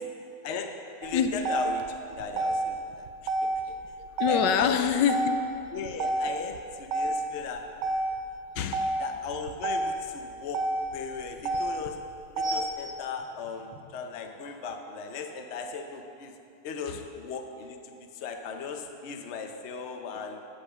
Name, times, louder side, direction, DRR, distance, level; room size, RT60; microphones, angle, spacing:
voice 1, 1.0-1.8 2.1-3.7 4.3-4.9 5.7-7.6 9.0-10.6 10.9-12.0 12.4-16.4 16.6-20.4, left 5 dB, 50° left, 5 dB, 0.9 m, -37 dB
Motor vehicle (road), 1.0-13.0, right 2 dB, 75° right, 1.4 m, -31 dB
voice 2, 4.2-5.4 8.5-9.0 16.9-17.0, left 8 dB, 80° left, 9 dB, 1.3 m, -25 dB
sound 1, 11.2-11.7 12.4-14.0 14.7-14.8, right 2 dB, 30° right, 1.3 m, -41 dB
13.5 x 5.8 x 7.2 m, 2.7 s
omnidirectional pair, 1.9 m